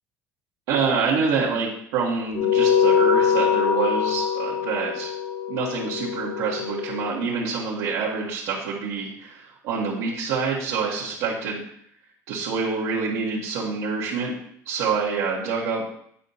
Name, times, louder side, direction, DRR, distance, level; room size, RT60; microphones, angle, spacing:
voice 1, 0.7-5.1 5.5-11.6 12.3-14.3 14.6-15.8, right 5 dB, 80° right, -7 dB, 1.3 m, -26 dB
sound 1, 2.3-7.1, left 7 dB, 55° left, 0.8 m, -23 dB
8.2 x 4.5 x 2.7 m, 0.68 s
supercardioid pair, 90°, 7 cm